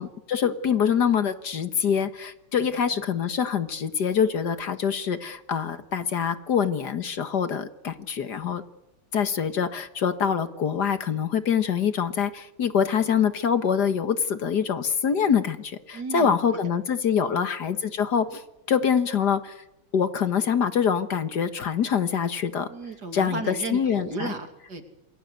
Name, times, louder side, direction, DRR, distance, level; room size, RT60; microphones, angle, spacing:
voice 1, 0.0-8.6 9.1-18.4 18.7-19.6 19.9-22.7 23.1-24.3, left 7 dB, 60° left, 11 dB, 2.0 m, -25 dB
voice 2, 15.9-16.4 17.2-17.5 22.7-24.9, right 4 dB, 60° right, 7 dB, 3.3 m, -34 dB
28.5 x 21.5 x 8.2 m, 0.88 s
omnidirectional pair, 2.0 m